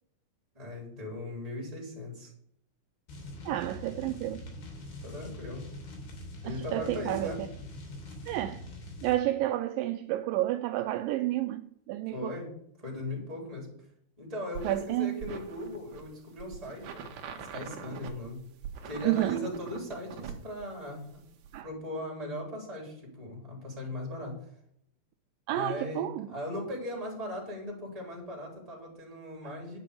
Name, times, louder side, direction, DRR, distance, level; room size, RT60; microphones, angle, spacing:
voice 1, 0.5-2.3 5.0-5.7 6.4-7.4 12.1-12.5 12.8-13.7 14.2-18.4 18.8-21.2 21.6-24.3 25.5-29.8, left 1 dB, 10° right, 3.7 m, -38 dB
sound 1, 3.1-9.2, left 1 dB, 75° left, 4.6 m, -43 dB
voice 2, 3.5-4.4 6.5-7.5 8.3-8.7 9.0-12.4 14.6-15.2 19.0-19.4 21.5-21.7 25.5-26.3 29.4-29.5, right 14 dB, 85° right, 2.0 m, -30 dB
sound 2, 14.5-21.6, right 7 dB, 65° right, 2.4 m, -43 dB
10.5 x 6.0 x 6.6 m
omnidirectional pair, 4.5 m